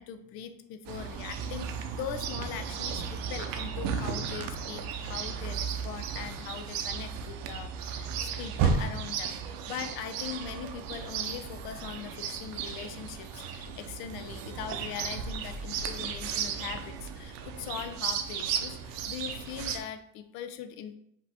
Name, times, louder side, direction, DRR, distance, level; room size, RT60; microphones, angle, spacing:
voice 1, 0.0-9.4 9.7-20.9, left 8 dB, 80° left, 10 dB, 0.6 m, -41 dB
Chirp tweet, 0.8-19.8, right 6 dB, 70° right, 0.6 m, -34 dB
5.1 x 2.7 x 3.5 m, 0.72 s
cardioid pair, 130°, 36 cm